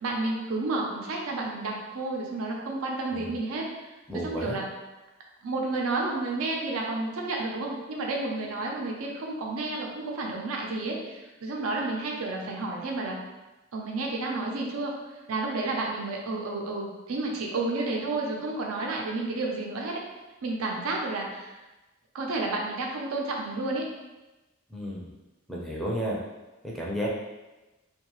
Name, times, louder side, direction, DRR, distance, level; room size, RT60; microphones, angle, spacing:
voice 1, 0.0-3.7 4.2-4.6 5.4-13.2 13.7-14.9 15.3-20.0 20.4-21.5 22.1-23.8, right 2 dB, 90° right, 0 dB, 0.5 m, -31 dB
voice 2, 4.1-4.6 24.7-25.1 25.5-26.2 26.6-27.1, equal, ahead, -5 dB, 0.4 m, -32 dB
2.7 x 2.3 x 2.9 m, 1.1 s
head